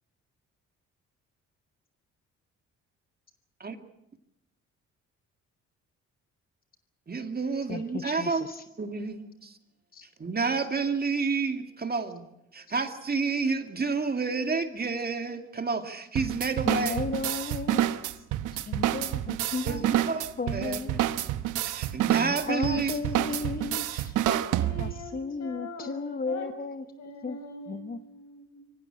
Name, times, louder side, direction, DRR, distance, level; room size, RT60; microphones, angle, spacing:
voice 1, 7.1-8.5 8.8-9.6 10.2-12.2 12.5-17.0 19.7-20.8 21.6-22.9 24.3-24.5, right 4 dB, 30° right, 7 dB, 2.2 m, -30 dB
voice 2, 7.7-8.6 9.9-10.1 16.7-17.8 18.1-18.3 18.5-21.0 22.1-24.1 24.8-26.8 27.2-27.4 27.7-28.0, left 4 dB, 30° left, 10 dB, 1.0 m, -35 dB
sound 1, 16.2-25.1, right 13 dB, 85° right, 1.2 m, -28 dB
voice 3, 24.6-25.1 25.4-26.5 26.7-28.7, left 1 dB, 65° left, 7 dB, 6.4 m, -42 dB
24.0 x 16.5 x 8.6 m, 0.84 s
cardioid pair, 90°, 30 cm